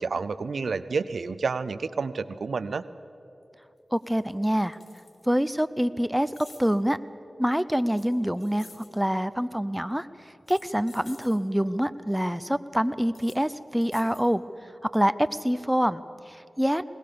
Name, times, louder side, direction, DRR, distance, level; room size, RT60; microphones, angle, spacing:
voice 1, 0.0-2.9, right 4 dB, 80° right, 15 dB, 0.5 m, -29 dB
sound 1, 3.4-3.5 4.0-5.6 6.3-6.7 7.9-9.0 10.3-11.4 13.0-13.4 13.8-14.3, left 3 dB, 85° left, 2.1 m, -51 dB
voice 2, 3.9-4.8 5.3-7.0 7.4-14.4 14.8-16.8, equal, 5° right, 13 dB, 0.7 m, -26 dB
21.0 x 19.0 x 6.9 m, 2.9 s
cardioid pair, 45°, 0 cm